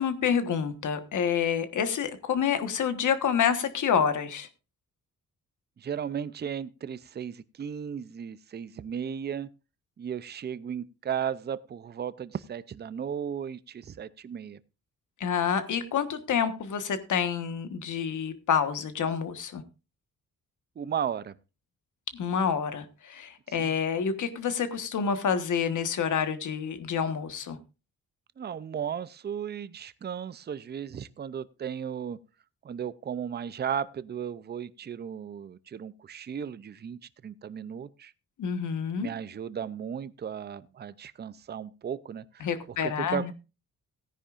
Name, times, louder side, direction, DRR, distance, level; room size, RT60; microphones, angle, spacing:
voice 1, 0.0-4.5 15.2-19.6 22.1-27.6 38.4-39.1 42.4-43.3, left 7 dB, 75° left, 10 dB, 1.4 m, -28 dB
voice 2, 5.8-9.5 10.0-14.6 20.8-21.4 23.5-23.7 28.4-32.2 32.6-38.1 39.0-43.3, right 8 dB, 35° right, 16 dB, 0.5 m, -35 dB
17.0 x 10.0 x 2.5 m, 0.29 s
wide cardioid pair, 125°, 31 cm